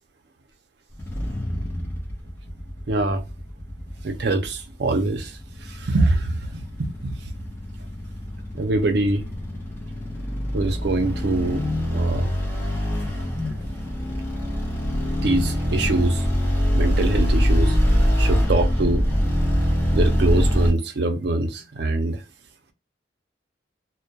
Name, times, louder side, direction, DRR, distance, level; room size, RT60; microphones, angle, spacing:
sound 1, 0.9-20.7, equal, 15° left, 0.6 m, -24 dB
voice 1, 2.9-3.2 4.0-5.3 5.6-7.2 8.5-9.3 10.5-11.7 11.9-12.3 15.2-16.2 16.7-17.8 18.2-19.1 19.9-22.2, right 2 dB, 60° right, 0.5 m, -24 dB
2.2 x 2.1 x 2.7 m
head